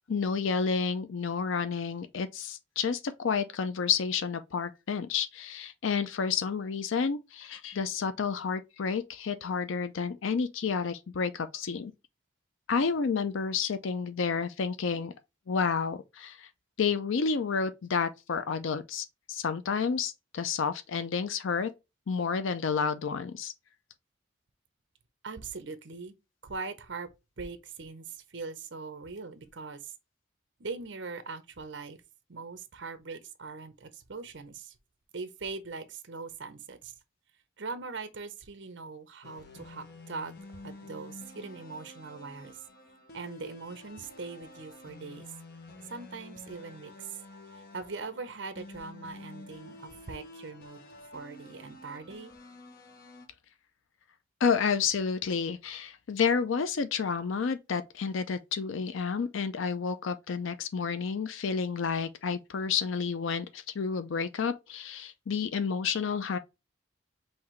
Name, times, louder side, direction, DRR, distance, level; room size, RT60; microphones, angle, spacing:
voice 1, 0.1-11.9 12.7-15.1 15.5-16.5 16.8-21.7 22.1-23.5 54.4-66.4, left 6 dB, 75° left, 0.5 m, -30 dB
voice 2, 25.2-26.1 26.4-27.1 27.4-29.9 30.6-32.0 32.3-34.7 35.1-36.9 37.6-42.6 43.1-45.3 45.9-47.2 47.5-50.8 51.1-52.3, right 4 dB, 65° right, 0.7 m, -41 dB
sound 1, 39.2-53.3, left 2 dB, 50° left, 0.9 m, -49 dB
5.7 x 2.7 x 3.1 m
head